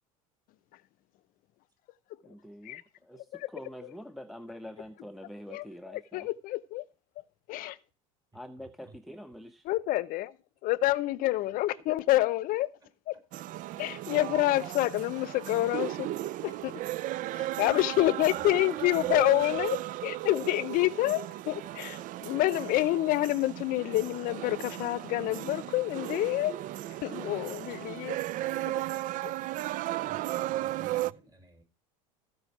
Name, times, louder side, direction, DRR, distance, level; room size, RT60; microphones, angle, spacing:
voice 1, 2.2-2.8 3.1-3.2 3.5-6.3 8.3-9.7, equal, ahead, 0.8 m, -45 dB
voice 2, 5.5-6.8 7.5-7.8 9.6-10.4 10.6-12.7 13.1-13.2 13.8-16.1 16.4-16.8 17.6-19.8 20.0-26.6 27.0-28.2 28.7-28.8 29.2-29.3, left 16 dB, 55° left, 0.7 m, -28 dB
voice 3, 8.3-9.0 10.8-11.5 15.1-15.2 18.3-20.3 22.9-23.0 30.0-31.6, right 2 dB, 25° right, 6.7 m, -57 dB
sound 1, 13.3-31.1, right 15 dB, 50° right, 0.5 m, -35 dB
sound 2, 17.9-26.2, right 6 dB, 75° right, 4.0 m, -61 dB
15.0 x 5.4 x 6.1 m
supercardioid pair, 95°, 17 cm